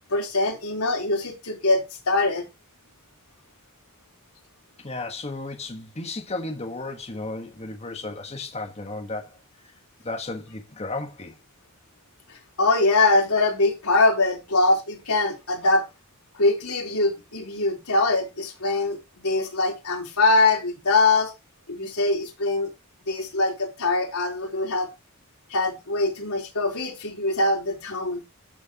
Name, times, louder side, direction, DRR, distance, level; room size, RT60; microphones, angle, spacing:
voice 1, 0.1-2.5 12.6-15.9 16.3-21.3 21.7-22.7 23.1-24.9 25.5-28.2, left 2 dB, 85° left, 3.8 m, -23 dB
voice 2, 4.8-9.4 10.0-11.4, left 2 dB, 30° left, 1.5 m, -34 dB
14.0 x 6.4 x 3.0 m
head